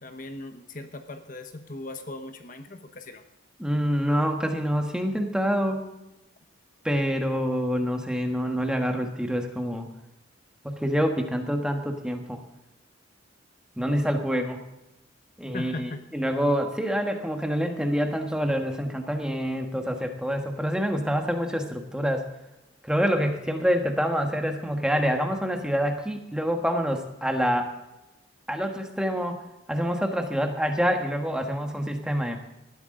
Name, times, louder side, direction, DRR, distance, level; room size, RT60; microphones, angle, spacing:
voice 1, 0.0-3.2 15.5-16.0, left 2 dB, 45° left, 7 dB, 1.1 m, -38 dB
voice 2, 3.6-5.9 6.8-9.9 10.6-12.4 13.8-14.6 15.4-22.3 22.8-27.7 28.5-29.4 29.7-32.4, equal, 5° right, 4 dB, 1.3 m, -26 dB
19.0 x 13.0 x 3.8 m, 0.97 s
head